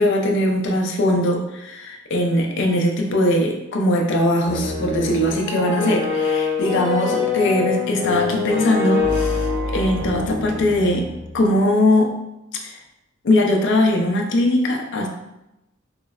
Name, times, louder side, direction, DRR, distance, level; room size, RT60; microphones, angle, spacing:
voice 1, 0.0-11.1 11.3-12.1 12.6-12.8 13.2-15.1, left 1 dB, 60° left, 2 dB, 0.5 m, -20 dB
sound 1, 4.4-11.4, left 4 dB, 20° right, 0.7 m, -24 dB
3.8 x 2.0 x 2.3 m, 0.91 s
head